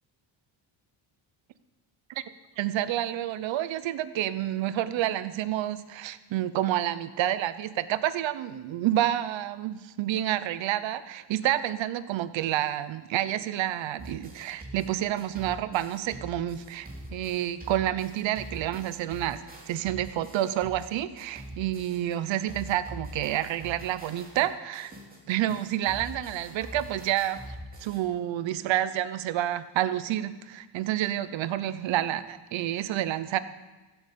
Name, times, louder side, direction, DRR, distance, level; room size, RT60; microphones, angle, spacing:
voice 1, 2.6-24.9 25.3-27.4 27.8-33.4, right 12 dB, 65° right, 14 dB, 1.0 m, -29 dB
sound 1, 14.0-22.1 22.5-28.0, right 1 dB, 20° right, 3.1 m, -44 dB
16.0 x 8.3 x 7.5 m, 1.2 s
cardioid pair, 140°, 49 cm